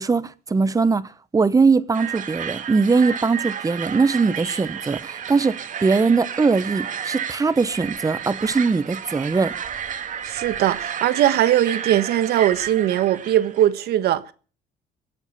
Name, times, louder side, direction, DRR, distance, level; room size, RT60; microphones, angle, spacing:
voice 1, 0.0-9.6, right 4 dB, 20° right, 1.0 m, -21 dB
sound 1, 1.9-13.7, right 8 dB, 50° right, 1.9 m, -32 dB
voice 2, 10.2-14.2, right 12 dB, 70° right, 1.4 m, -20 dB
23.0 x 8.2 x 7.2 m
cardioid pair, 110°, 17 cm